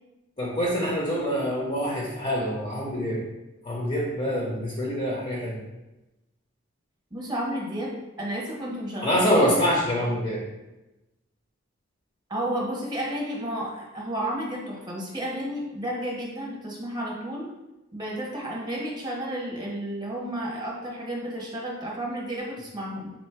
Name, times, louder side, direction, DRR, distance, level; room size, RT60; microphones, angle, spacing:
voice 1, 0.4-3.2 3.6-5.6 9.0-10.4, equal, 30° left, -3 dB, 0.7 m, -25 dB
voice 2, 7.1-9.5 10.0-10.1 12.3-17.5 17.9-23.1, right 1 dB, 20° right, -3 dB, 0.9 m, -32 dB
4.1 x 2.1 x 4.4 m, 1.0 s
head